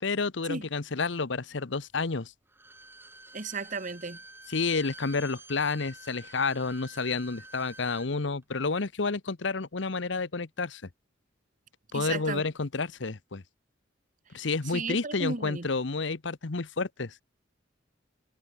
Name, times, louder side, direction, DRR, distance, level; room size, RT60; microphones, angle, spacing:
voice 1, 0.0-2.3 4.5-10.8 11.9-13.4 14.3-17.1, left 4 dB, 65° left, 1.0 m, -30 dB
Bowed string instrument, 2.5-8.1 8.4-8.5, right 2 dB, 10° right, 6.6 m, -49 dB
voice 2, 3.3-4.2 11.9-12.4 14.6-15.7, right 3 dB, 40° right, 1.5 m, -34 dB
head